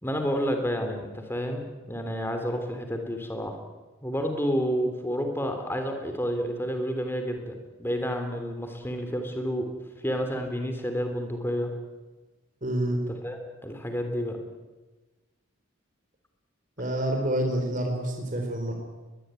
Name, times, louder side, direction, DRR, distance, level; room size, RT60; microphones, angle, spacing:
voice 1, 0.0-3.6 4.0-9.7 10.0-11.7 13.1-14.4, equal, 10° left, 5 dB, 3.4 m, -30 dB
voice 2, 12.6-13.0 16.8-18.7, right 1 dB, 40° right, 2 dB, 4.3 m, -28 dB
23.0 x 21.5 x 9.2 m, 1.2 s
head